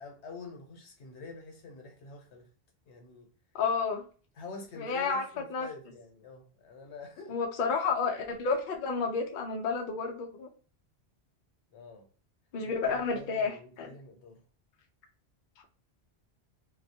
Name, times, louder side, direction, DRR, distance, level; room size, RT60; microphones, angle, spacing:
voice 1, 0.0-2.4 2.9-3.3 4.4-7.4 11.7-12.1 12.6-14.3, left 3 dB, 85° left, 1.0 m, -47 dB
voice 2, 3.5-4.0 4.8-5.2 5.5-5.7 7.3-10.5 12.5-13.9, left 4 dB, 55° left, 0.6 m, -31 dB
2.3 x 2.1 x 2.7 m
omnidirectional pair, 1.1 m